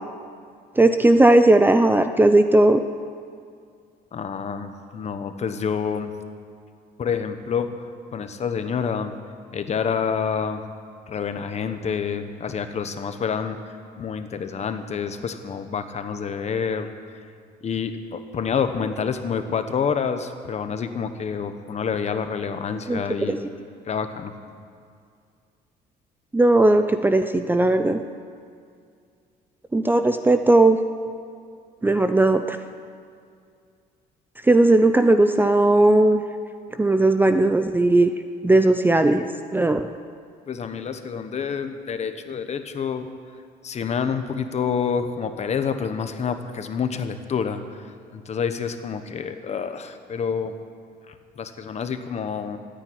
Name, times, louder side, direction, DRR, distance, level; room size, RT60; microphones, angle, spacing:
voice 1, 0.8-2.8 22.9-23.0 23.3-23.4 26.3-28.0 29.7-30.8 31.8-32.6 34.5-36.2 36.8-38.1 38.4-39.2 39.5-39.9, right 2 dB, 10° right, 8 dB, 0.6 m, -17 dB
voice 2, 4.1-6.1 7.0-7.7 8.1-9.1 9.5-10.6 11.1-16.9 17.6-23.4 23.9-24.3 40.5-43.1 43.6-47.9 48.1-50.5 51.1-52.6, left 6 dB, 40° left, 9 dB, 1.2 m, -28 dB
14.5 x 9.1 x 9.4 m, 2.3 s
cardioid pair, 110°, 17 cm